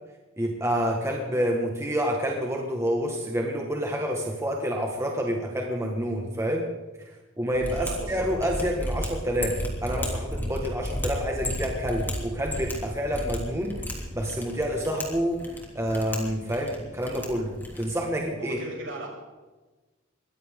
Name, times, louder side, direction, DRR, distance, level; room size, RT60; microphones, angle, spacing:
voice 1, 0.4-6.7 7.0-13.8 14.1-15.5 15.8-18.6, equal, 15° right, 0 dB, 1.8 m, -28 dB
Mechanisms, 7.5-18.0, equal, 10° left, 3.1 m, -34 dB
voice 2, 7.7-8.2 18.4-19.1, right 1 dB, 65° right, -1 dB, 6.3 m, -36 dB
22.0 x 16.5 x 3.9 m, 1.2 s
head